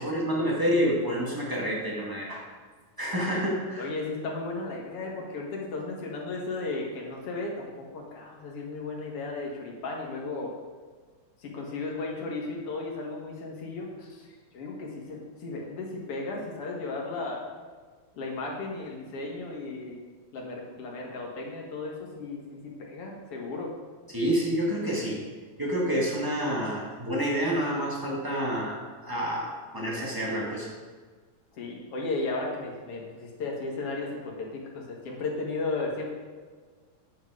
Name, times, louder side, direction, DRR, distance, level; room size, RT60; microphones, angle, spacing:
voice 1, 0.0-2.5 3.0-3.9 24.1-25.2 25.6-30.7, equal, 15° right, -4 dB, 0.6 m, -28 dB
voice 2, 3.8-10.6 11.4-14.3 14.5-17.4 18.1-20.0 20.3-23.7 31.5-36.1, left 3 dB, 50° left, -1 dB, 2.3 m, -35 dB
9.3 x 8.5 x 5.0 m, 1.5 s
omnidirectional pair, 4.0 m